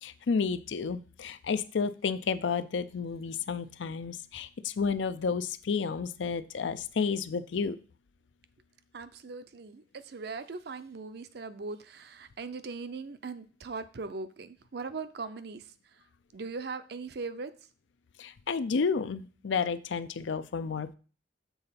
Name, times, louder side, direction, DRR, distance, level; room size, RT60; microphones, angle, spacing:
voice 1, 0.0-7.8 18.2-20.9, left 5 dB, 90° left, 0.5 m, -31 dB
voice 2, 8.9-16.0 16.3-17.5, right 4 dB, 60° right, 0.5 m, -40 dB
7.0 x 3.9 x 5.7 m
head